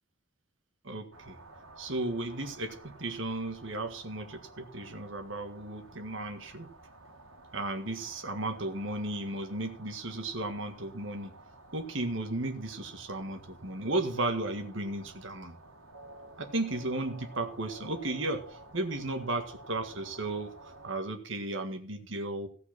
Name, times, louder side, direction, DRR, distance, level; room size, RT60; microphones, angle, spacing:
voice 1, 0.8-1.4 1.8-6.7 7.5-11.3 11.7-15.6 16.4-20.5 20.8-22.5, right 2 dB, 65° right, 6 dB, 1.7 m, -34 dB
sound 1, 1.1-20.9, right 2 dB, 90° right, 2.5 m, -52 dB
17.0 x 6.0 x 5.9 m, 0.43 s
head